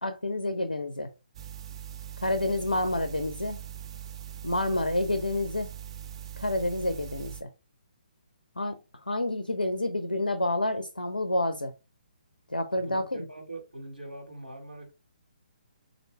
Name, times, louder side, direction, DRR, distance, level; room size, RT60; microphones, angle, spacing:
voice 1, 0.0-1.1 2.2-3.6 4.4-5.7 6.4-7.5 8.6-11.7 12.5-13.2, left 1 dB, 85° left, 0.5 m, -29 dB
sound 1, 1.3-7.4, right 10 dB, 35° right, 0.4 m, -41 dB
voice 2, 13.3-14.9, right 2 dB, 90° right, 1.5 m, -42 dB
4.4 x 2.6 x 3.0 m
figure-of-eight pair, 135°, 5 cm